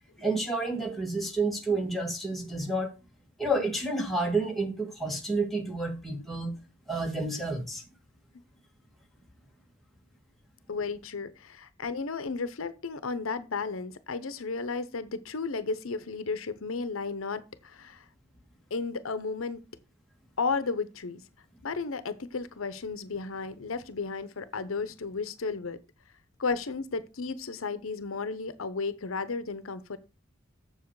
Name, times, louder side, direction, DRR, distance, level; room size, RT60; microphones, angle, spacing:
voice 1, 0.2-2.9 3.4-6.5 6.9-7.8, right 2 dB, ahead, 1.7 m, -30 dB
voice 2, 10.7-18.0 18.7-19.6 20.4-21.2 21.6-25.8 26.4-30.0, left 4 dB, 80° left, 0.8 m, -33 dB
7.3 x 7.1 x 4.7 m
head